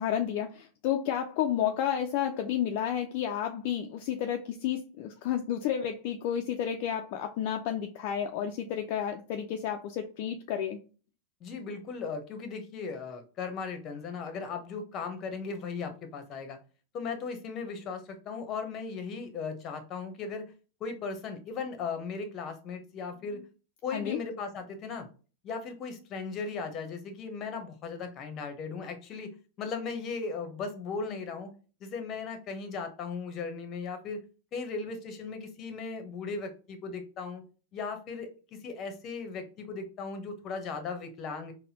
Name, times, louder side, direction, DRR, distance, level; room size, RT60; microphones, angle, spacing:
voice 1, 0.0-10.8 23.9-24.2, left 9 dB, 55° left, 0.4 m, -31 dB
voice 2, 11.4-16.6 16.9-20.5 20.8-23.4 23.8-25.1 25.4-31.5 31.8-34.2 34.5-37.4 37.7-41.5, left 5 dB, 40° left, 0.9 m, -37 dB
4.0 x 2.1 x 2.8 m
hypercardioid pair, 105°, 0 cm